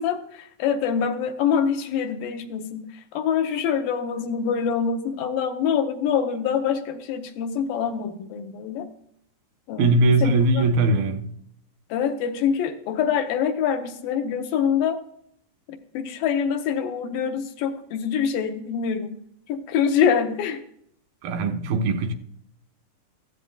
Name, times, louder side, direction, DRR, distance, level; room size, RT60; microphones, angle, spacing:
voice 1, 0.0-2.9 3.1-8.9 9.7-10.6 11.9-15.0 15.9-19.2 19.5-20.6, left 7 dB, 75° left, 2.7 m, -25 dB
voice 2, 9.8-11.3 21.2-22.1, right 2 dB, 90° right, 3.2 m, -20 dB
15.0 x 14.0 x 2.4 m
omnidirectional pair, 4.1 m